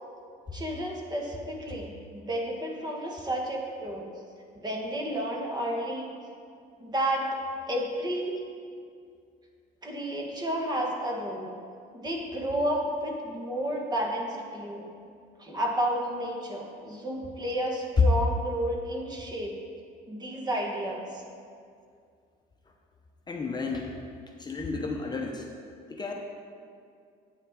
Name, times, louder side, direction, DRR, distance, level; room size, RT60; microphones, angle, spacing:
voice 1, 0.5-4.1 4.6-6.1 6.8-7.3 7.7-8.3 9.8-11.5 11.9-14.9 15.4-19.6 20.1-21.2, right 1 dB, 25° right, 0 dB, 1.5 m, -31 dB
voice 2, 23.3-24.0 24.4-25.5 25.9-26.1, left 4 dB, 25° left, 1 dB, 0.8 m, -33 dB
9.0 x 8.7 x 3.7 m, 2.3 s
cardioid pair, 110°, 17 cm